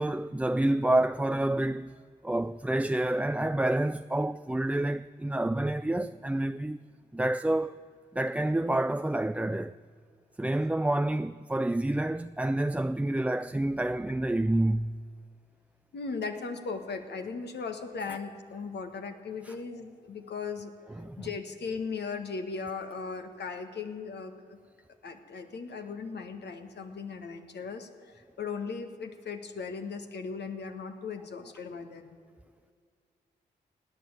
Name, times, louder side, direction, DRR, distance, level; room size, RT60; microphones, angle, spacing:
voice 1, 0.0-1.9 2.2-6.8 7.1-7.8 8.1-9.7 10.4-14.9 19.4-19.5 21.0-21.2, right 1 dB, 5° right, 0.4 m, -28 dB
voice 2, 15.9-20.7 21.2-24.6 25.0-32.2, left 5 dB, 65° left, 1.6 m, -38 dB
17.0 x 9.2 x 9.1 m
supercardioid pair, 40°, 19 cm